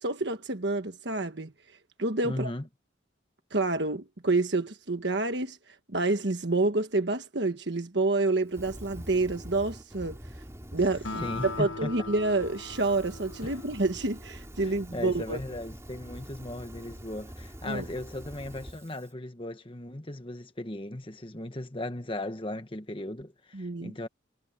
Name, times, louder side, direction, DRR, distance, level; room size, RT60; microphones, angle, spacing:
voice 1, 0.0-1.5 2.0-2.5 3.5-10.2 10.7-15.4 17.7-17.8 23.5-23.9, right 2 dB, 60° right, 1.4 m, -28 dB
voice 2, 2.2-2.7 11.2-12.1 13.4-13.6 14.6-24.1, left 1 dB, 25° left, 1.4 m, -37 dB
Fire, 8.5-11.6 12.1-19.1, equal, 15° right, 3.5 m, -45 dB
Acoustic guitar, 11.0-14.6, left 3 dB, 70° left, 1.4 m, -40 dB
head